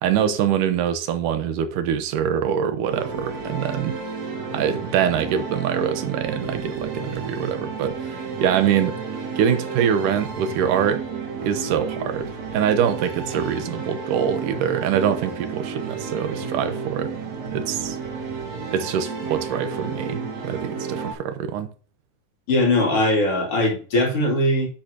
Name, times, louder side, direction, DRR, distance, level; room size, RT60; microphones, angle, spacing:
voice 1, 0.0-4.0 4.5-9.0 9.4-11.0 11.4-17.1 17.5-18.0 18.7-21.7, right 8 dB, 90° right, 2.6 m, -24 dB
sound 1, 2.9-21.1, right 5 dB, 60° right, 3.2 m, -32 dB
voice 2, 22.5-24.7, left 1 dB, 45° left, 3.7 m, -20 dB
10.5 x 7.9 x 2.9 m
omnidirectional pair, 3.6 m